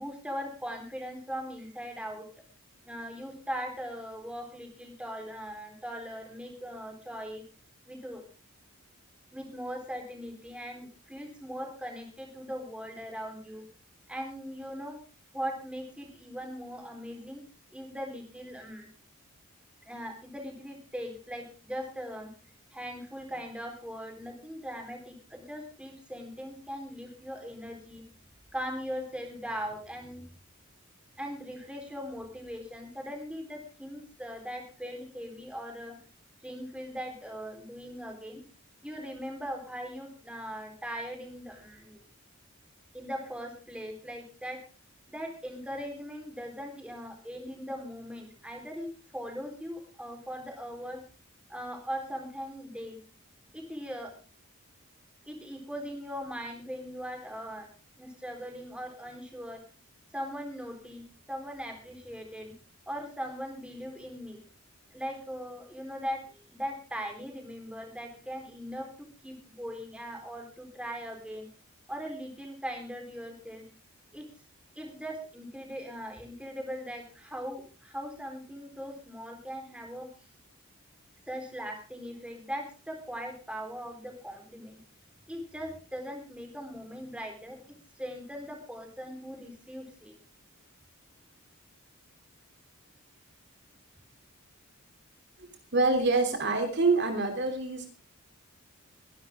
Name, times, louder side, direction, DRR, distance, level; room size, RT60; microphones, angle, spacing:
voice 1, 0.0-2.3 2.8-7.4 7.9-8.2 9.3-13.6 14.1-15.0 15.3-17.4 17.7-18.9 19.9-22.3 22.7-28.0 28.5-30.2 31.2-36.0 36.4-38.4 38.8-42.0 42.9-44.6 45.1-51.0 51.5-53.0 53.5-54.1 55.3-57.7 58.0-59.6 60.1-61.0 61.3-62.5 62.9-64.4 64.9-71.5 71.9-73.7 74.1-74.3 74.8-80.1 81.3-84.8 85.3-90.1, equal, 5° right, 3 dB, 4.1 m, -40 dB
voice 2, 95.7-97.9, right 3 dB, 50° right, 4 dB, 3.2 m, -26 dB
23.0 x 12.0 x 3.7 m, 0.33 s
head